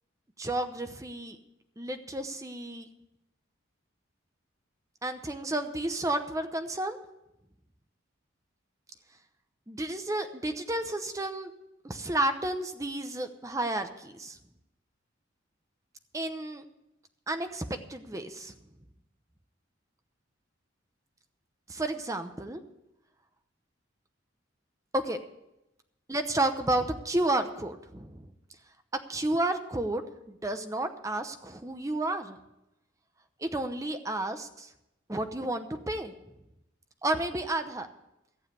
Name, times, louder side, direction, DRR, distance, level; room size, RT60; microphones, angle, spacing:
voice 1, 0.4-1.4 1.8-2.9 5.0-7.0 9.7-11.5 11.8-14.4 16.1-16.6 17.3-18.6 21.7-22.6 24.9-25.2 26.1-28.2 29.1-32.4 33.4-34.7 35.1-36.1 37.0-37.9, right 1 dB, 15° right, 7 dB, 0.8 m, -31 dB
14.5 x 7.4 x 8.0 m, 0.89 s
head